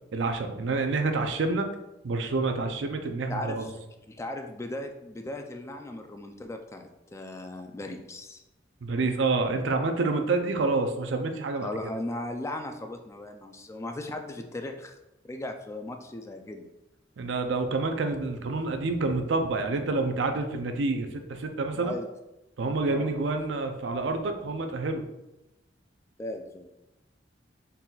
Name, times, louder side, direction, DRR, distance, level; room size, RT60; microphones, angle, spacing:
voice 1, 0.1-1.7 2.0-3.7 8.8-11.7 17.2-21.9 22.6-25.0, right 3 dB, 70° right, 5 dB, 0.5 m, -28 dB
voice 2, 3.3-3.8 4.1-8.4 11.6-15.0 15.2-16.7 21.7-22.1 22.9-23.1 26.2-26.7, left 1 dB, 15° left, 5 dB, 0.3 m, -37 dB
4.0 x 3.9 x 2.3 m, 0.93 s
head